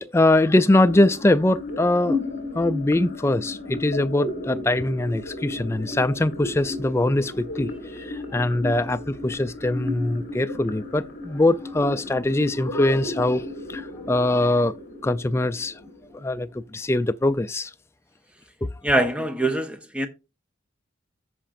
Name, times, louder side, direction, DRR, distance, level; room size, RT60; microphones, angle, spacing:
voice 1, 0.0-2.2 2.5-14.8 15.0-15.8 16.1-17.7, left 1 dB, 15° left, 0.3 m, -22 dB
sound 1, 0.7-16.7, left 2 dB, 45° left, 1.5 m, -34 dB
voice 2, 18.8-20.1, right 1 dB, 5° right, 0.7 m, -23 dB
14.5 x 5.0 x 2.5 m
head